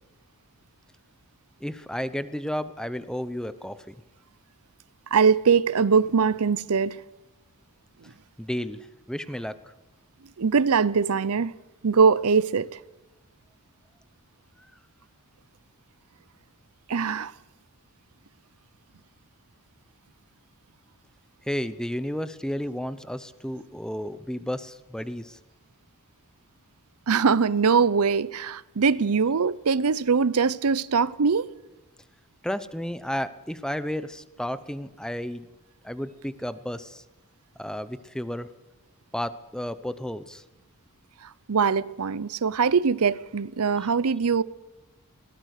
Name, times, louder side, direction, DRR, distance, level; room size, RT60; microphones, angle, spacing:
voice 1, 1.6-3.9 8.4-9.7 21.4-25.4 32.4-35.5 35.8-37.0 37.6-38.5 39.1-40.4, equal, 5° left, 0.8 m, -32 dB
voice 2, 5.1-7.0 10.4-11.5 11.8-12.8 16.9-17.3 27.1-31.5 41.2-44.4, right 5 dB, 80° right, 0.6 m, -22 dB
22.0 x 18.0 x 6.6 m
head